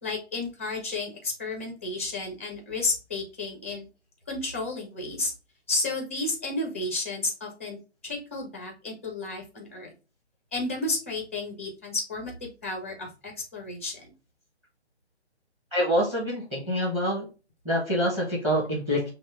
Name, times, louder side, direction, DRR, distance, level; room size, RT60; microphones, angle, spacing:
voice 1, 0.0-3.8 4.3-5.3 5.7-7.8 8.0-9.9 10.5-14.1, left 3 dB, 15° left, 1 dB, 0.5 m, -32 dB
voice 2, 15.7-17.3 17.6-19.1, equal, 10° right, -2 dB, 1.0 m, -26 dB
5.4 x 2.1 x 3.3 m, 0.32 s
figure-of-eight pair, 145°, 34 cm